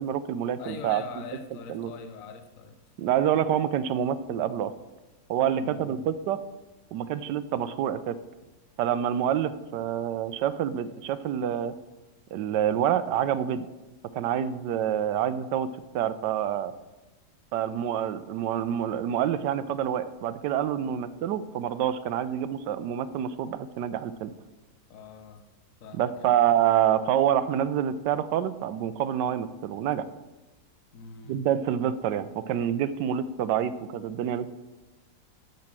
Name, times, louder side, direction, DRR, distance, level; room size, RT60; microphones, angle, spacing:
voice 1, 0.0-1.0 1.7-1.9 3.0-4.7 5.3-6.4 6.9-8.2 8.8-11.7 12.3-13.7 14.1-15.7 15.9-16.7 17.5-24.3 25.9-30.1 31.3-34.5, right 10 dB, 85° right, 14 dB, 1.2 m, -27 dB
voice 2, 0.6-2.8 5.5-6.0 20.8-21.0 24.9-25.4 25.8-26.4 30.9-31.4, left 5 dB, 55° left, 7 dB, 1.2 m, -43 dB
7.6 x 7.0 x 7.4 m, 1.1 s
omnidirectional pair, 1.8 m